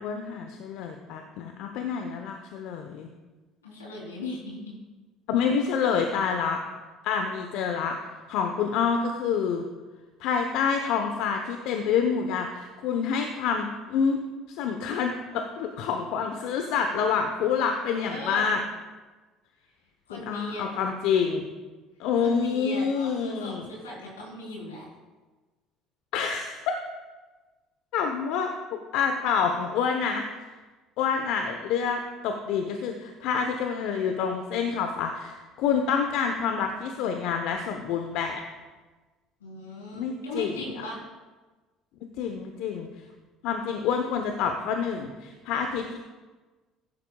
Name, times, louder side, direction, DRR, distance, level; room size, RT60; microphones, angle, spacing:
voice 1, 0.0-3.1 5.3-6.6 7.0-7.9 8.3-9.6 10.2-14.2 14.6-18.6 20.1-21.4 22.0-23.7 26.1-26.7 27.9-28.5 28.9-30.2 31.0-38.4 39.9-40.5 42.2-42.9 43.4-46.0, left 6 dB, 65° left, 5 dB, 0.9 m, -27 dB
voice 2, 3.6-4.7 17.9-18.5 20.1-20.9 22.2-24.9 39.4-41.0, left 1 dB, 90° left, -3 dB, 3.6 m, -38 dB
15.5 x 10.5 x 2.3 m, 1.3 s
hypercardioid pair, 65°, 0 cm